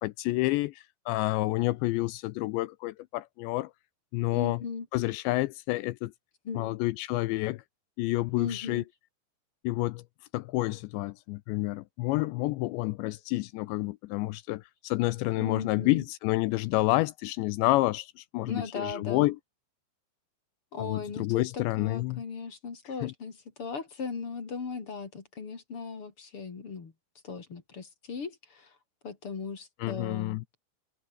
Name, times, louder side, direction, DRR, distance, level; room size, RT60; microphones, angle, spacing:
voice 1, 0.0-3.7 4.1-4.6 4.9-6.1 6.6-7.6 8.0-8.8 9.6-10.0 10.3-19.4 20.8-22.2 23.0-23.1 29.8-30.4, left 19 dB, 80° left, 2.7 m, -29 dB
voice 2, 4.3-4.9 6.4-6.7 8.4-8.8 15.3-16.0 18.5-19.3 20.7-26.9 27.2-28.8 29.0-30.4, left 5 dB, 35° left, 3.0 m, -38 dB
omnidirectional pair, 5.5 m